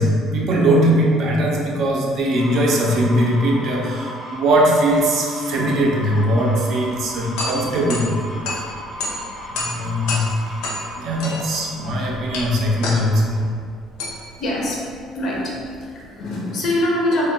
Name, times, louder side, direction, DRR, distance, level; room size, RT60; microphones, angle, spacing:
voice 1, 0.0-8.5 9.5-10.3 10.9-13.4, right 1 dB, 50° right, -2 dB, 0.4 m, -20 dB
sound 1, 2.3-13.3, equal, 15° right, 0.7 m, -36 dB
sound 2, 7.1-16.0, left 2 dB, 90° left, 0.5 m, -31 dB
voice 2, 14.4-14.9 15.1-17.3, left 1 dB, 45° left, -3 dB, 0.5 m, -23 dB
2.2 x 2.2 x 3.7 m, 2.2 s
cardioid pair, 165°, 0 cm